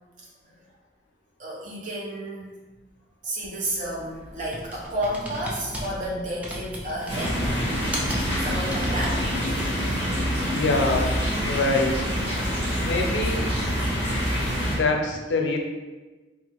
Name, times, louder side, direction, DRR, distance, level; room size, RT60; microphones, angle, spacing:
voice 1, 1.4-2.6 3.2-7.4 8.4-9.3 12.6-12.7 14.6-14.7, right 1 dB, 45° right, -5 dB, 0.7 m, -31 dB
Computer keyboard, 3.4-10.4, equal, 10° right, 0.3 m, -37 dB
sound 1, 7.1-14.8, equal, 30° right, 1.5 m, -26 dB
voice 2, 10.5-11.1 11.4-11.9 12.8-13.5 14.6-15.6, left 3 dB, 80° left, 2 dB, 0.4 m, -24 dB
3.1 x 2.3 x 2.9 m, 1.2 s
head